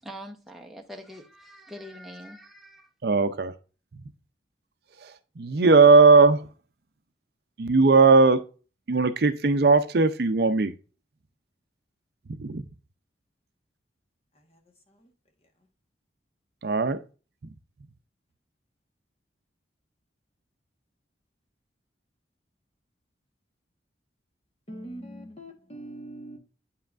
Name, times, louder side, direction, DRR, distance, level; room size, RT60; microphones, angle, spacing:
voice 1, 0.0-2.9, equal, ahead, 0.8 m, -43 dB
voice 2, 3.0-3.5 3.9-4.1 5.0-6.5 7.6-8.4 8.9-10.7 12.3-12.7 16.6-17.0 17.4-17.5, right 4 dB, 55° right, 0.5 m, -19 dB
voice 3, 24.7-26.4, right 1 dB, 30° left, 1.3 m, -42 dB
8.2 x 5.6 x 2.5 m
head